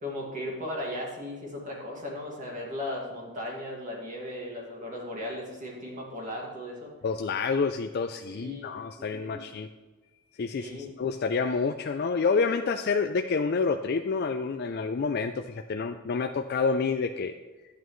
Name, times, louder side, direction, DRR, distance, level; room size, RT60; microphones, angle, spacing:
voice 1, 0.0-6.9 8.3-8.7 9.0-9.4 10.6-10.9, left 1 dB, 35° right, -2 dB, 2.0 m, -37 dB
voice 2, 7.0-9.7 10.4-17.3, left 4 dB, 45° left, 6 dB, 0.4 m, -28 dB
11.5 x 8.4 x 3.1 m, 1.2 s
head